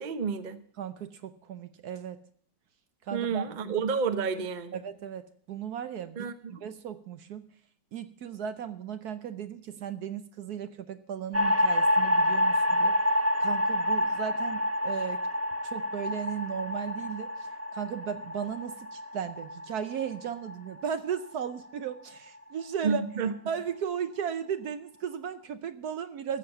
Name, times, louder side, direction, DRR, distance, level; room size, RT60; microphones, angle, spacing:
voice 1, 0.0-0.6 3.1-4.8 6.2-6.6 22.8-23.3, right 5 dB, 35° right, 10 dB, 0.8 m, -30 dB
voice 2, 0.8-2.2 3.0-3.7 4.7-7.4 7.9-13.0 13.4-15.3 15.6-23.0 23.5-26.4, right 8 dB, 65° right, 11 dB, 1.1 m, -36 dB
sound 1, 11.3-21.7, left 1 dB, 20° right, 0.4 m, -28 dB
14.0 x 7.4 x 7.1 m, 0.62 s
omnidirectional pair, 2.0 m